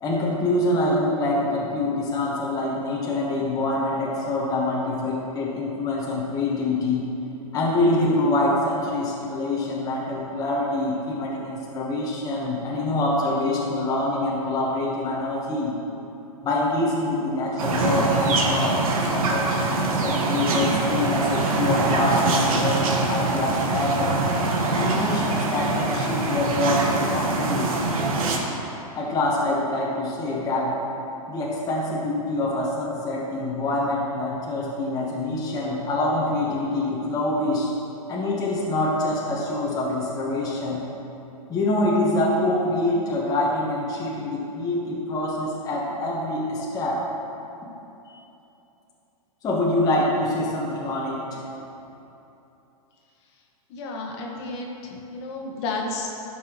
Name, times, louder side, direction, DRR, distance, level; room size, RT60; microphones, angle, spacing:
voice 1, 0.0-7.0 7.5-15.7 16.4-24.2 24.7-27.7 28.9-30.7 31.3-37.7 38.1-40.8 41.5-47.1 49.4-51.4, left 1 dB, 20° left, -5 dB, 1.2 m, -25 dB
sound 1, 17.6-28.4, right 2 dB, 65° right, 1.6 m, -23 dB
voice 2, 53.7-56.1, left 3 dB, 45° left, -1 dB, 1.5 m, -32 dB
13.5 x 6.0 x 3.1 m, 2.9 s
hypercardioid pair, 135°, 20 cm